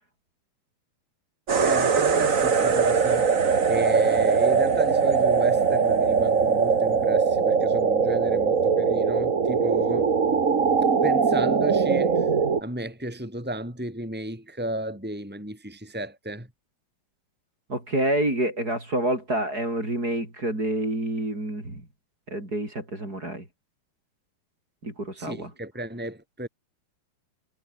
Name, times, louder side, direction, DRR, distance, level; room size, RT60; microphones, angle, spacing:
sound 1, 1.5-12.6, right 5 dB, 45° right, 1.0 m, -21 dB
voice 1, 1.6-3.3 3.7-10.1 11.0-12.3 12.6-16.5 25.2-26.5, right 1 dB, ahead, 5.8 m, -33 dB
voice 2, 17.7-21.9 22.3-23.5 24.8-25.5, right 1 dB, 25° right, 7.3 m, -28 dB
omnidirectional pair, 4.2 m